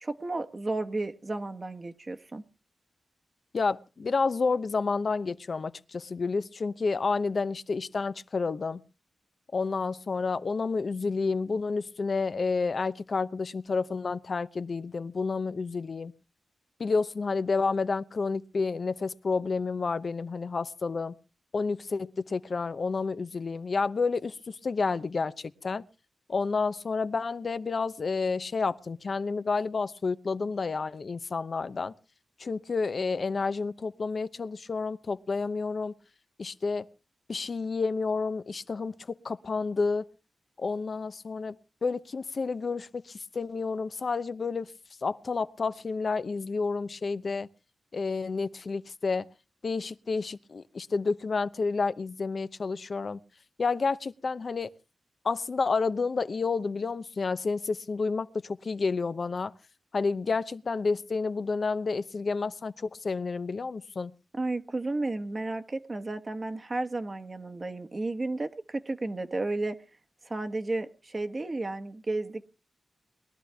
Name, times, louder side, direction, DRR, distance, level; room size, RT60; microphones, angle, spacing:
voice 1, 0.0-2.4 64.3-69.8 70.2-72.4, right 2 dB, 35° right, 1.3 m, -33 dB
voice 2, 3.5-8.8 9.5-16.1 16.8-21.1 21.5-25.8 26.3-31.9 32.4-35.9 36.4-36.9 37.3-40.1 40.6-41.6 41.8-44.7 45.0-47.5 47.9-49.3 49.6-53.2 53.6-54.7 55.2-59.5 59.9-64.1, left 4 dB, 55° left, 0.8 m, -30 dB
21.0 x 12.0 x 3.5 m
cardioid pair, 70°, 0 cm